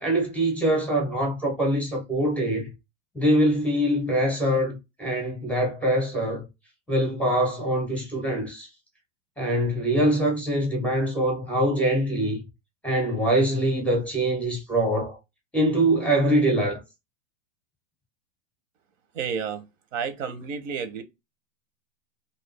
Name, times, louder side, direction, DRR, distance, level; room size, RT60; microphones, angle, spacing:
voice 1, 0.0-2.7 3.1-6.4 6.9-8.7 9.4-12.4 12.8-15.2 15.5-16.8, right 1 dB, 5° left, 0.7 m, -23 dB
voice 2, 19.1-19.6 19.9-21.0, right 6 dB, 85° right, 1.0 m, -30 dB
2.7 x 2.4 x 3.3 m
supercardioid pair, 160°, 37 cm